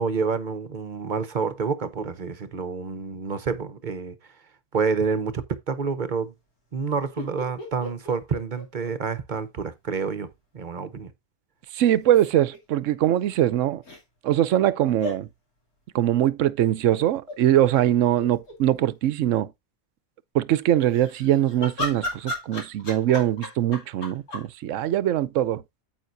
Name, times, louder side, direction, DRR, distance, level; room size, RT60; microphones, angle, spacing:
voice 1, 0.0-4.2 4.7-6.3 6.7-11.1, right 5 dB, 40° right, 0.8 m, -28 dB
sound 1, 7.2-9.4 9.7-9.8 11.9-12.6 13.8-14.0 15.0-15.2 17.0-17.4 17.9-18.0 18.1-18.9 20.8-24.5, left 2 dB, 85° left, 3.2 m, -35 dB
voice 2, 11.7-13.8 14.2-15.3 15.9-19.5 20.3-25.6, right 12 dB, 65° right, 0.9 m, -22 dB
9.2 x 7.8 x 2.6 m
omnidirectional pair, 1.5 m